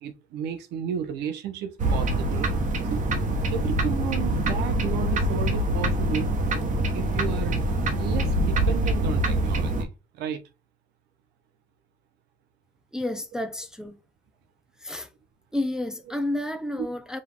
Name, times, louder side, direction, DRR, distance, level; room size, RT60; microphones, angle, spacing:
voice 1, 0.0-2.5 2.9-3.1 3.5-6.3 6.9-7.6 8.0-10.4, right 8 dB, 85° right, 0.8 m, -33 dB
sound 1, 1.8-9.8, right 1 dB, 50° right, 1.0 m, -25 dB
voice 2, 12.9-14.0 14.8-15.1 15.5-17.2, left 1 dB, 5° right, 0.5 m, -30 dB
5.2 x 2.4 x 3.5 m
cardioid pair, 110°, 17 cm